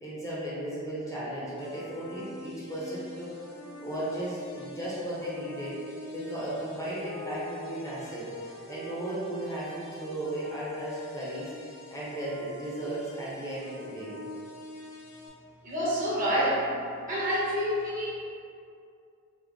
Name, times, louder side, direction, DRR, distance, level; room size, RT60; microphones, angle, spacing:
voice 1, 0.0-3.4 3.8-5.8 6.1-14.1, right 1 dB, 15° left, -8 dB, 0.6 m, -36 dB
sound 1, 1.6-15.3, left 1 dB, 70° left, 0.7 m, -44 dB
voice 2, 15.6-16.6 17.1-18.1, equal, 40° right, -7 dB, 0.9 m, -27 dB
3.6 x 2.1 x 3.4 m, 2.4 s
head